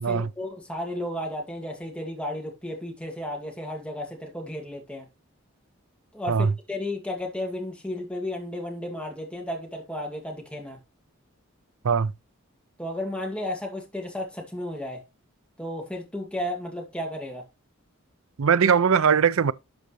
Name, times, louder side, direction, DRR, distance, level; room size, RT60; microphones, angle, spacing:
voice 1, 0.1-5.1 6.1-10.8 12.8-15.0 15.6-17.4, left 1 dB, 5° left, 2.1 m, -33 dB
voice 2, 18.4-19.5, right 6 dB, 70° right, 0.5 m, -20 dB
12.0 x 5.1 x 3.1 m
head